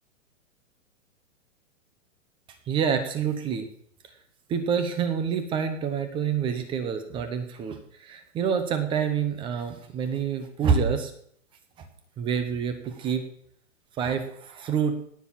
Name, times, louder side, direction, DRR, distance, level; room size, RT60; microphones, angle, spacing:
voice 1, 2.7-3.7 4.5-11.1 12.2-13.3 14.0-14.9, right 7 dB, 10° right, 8 dB, 0.9 m, -27 dB
17.5 x 7.1 x 5.8 m, 0.65 s
hypercardioid pair, 160°, 40 cm